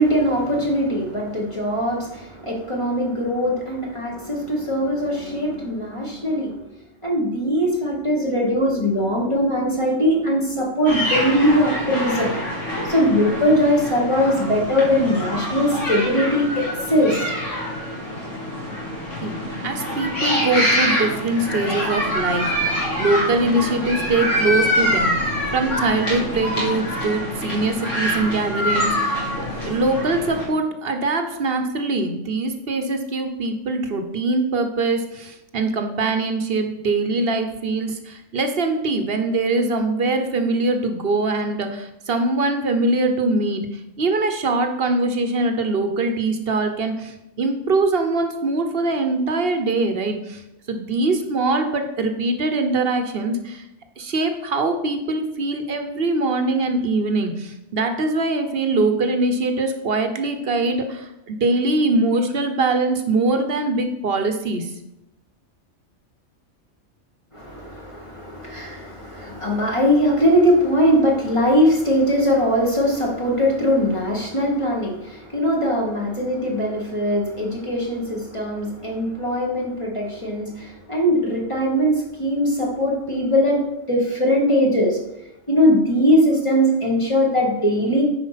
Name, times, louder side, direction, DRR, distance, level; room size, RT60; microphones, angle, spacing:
voice 1, 0.0-6.6 7.0-12.3 12.8-17.2 67.3-85.0 85.5-88.0, equal, 25° left, -2 dB, 1.5 m, -21 dB
sound 1, 10.9-30.5, equal, 75° left, 3.3 m, -25 dB
voice 2, 19.6-22.5 23.0-25.1 25.5-50.4 50.7-53.7 54.0-64.7, right 2 dB, 50° right, 6 dB, 1.1 m, -22 dB
9.5 x 4.9 x 5.8 m, 0.88 s
omnidirectional pair, 1.3 m